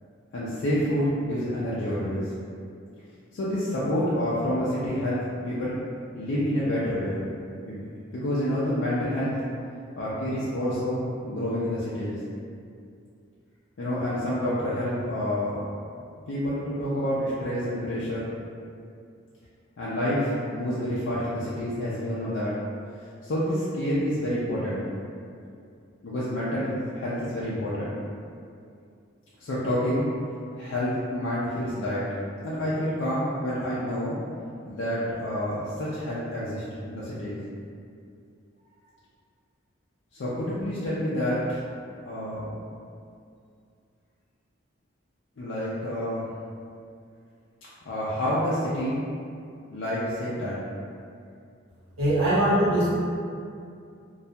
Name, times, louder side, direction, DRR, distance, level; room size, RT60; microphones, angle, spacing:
voice 1, 0.3-2.3 3.3-5.8 6.1-7.2 7.6-7.9 8.1-9.4 10.0-12.2 13.8-15.7 16.3-18.3 19.8-22.5 23.2-24.8 26.0-28.0 29.4-30.1 30.6-32.1 32.4-34.2 34.7-37.4 40.1-41.6 42.0-42.6 45.4-46.3 47.9-49.0 49.7-50.7, equal, 65° left, -9 dB, 0.4 m, -28 dB
voice 2, 52.0-52.9, right 1 dB, 85° right, -10 dB, 1.0 m, -21 dB
2.3 x 2.2 x 2.7 m, 2.4 s
head